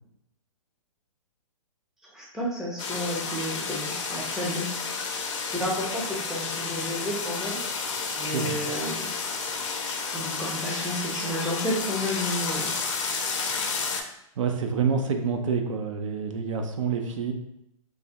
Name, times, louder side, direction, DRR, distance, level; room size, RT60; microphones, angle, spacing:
voice 1, 2.1-4.7 5.5-7.6 8.2-9.1 10.1-12.7, equal, 5° right, -4 dB, 0.5 m, -31 dB
sound 1, 2.8-14.0, left 5 dB, 55° left, 0.6 m, -31 dB
voice 2, 8.2-8.6 14.4-17.3, right 5 dB, 60° right, 5 dB, 0.4 m, -27 dB
3.3 x 2.1 x 2.8 m, 0.81 s
hypercardioid pair, 125°, 18 cm